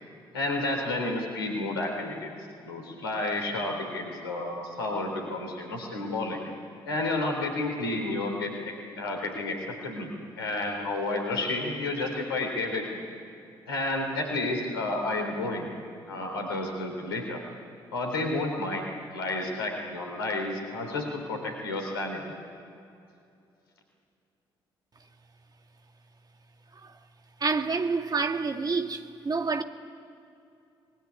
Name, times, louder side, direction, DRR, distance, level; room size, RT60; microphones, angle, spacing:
voice 1, 0.3-2.3 2.6-6.4 6.8-9.6 9.8-10.1 10.4-13.0 13.7-15.7 16.1-17.4 17.9-18.8 19.1-22.2, left 2 dB, 80° left, 3.8 m, -31 dB
voice 2, 27.4-29.6, right 4 dB, 30° right, 2.2 m, -28 dB
26.0 x 21.0 x 9.9 m
figure-of-eight pair, 45°, 12 cm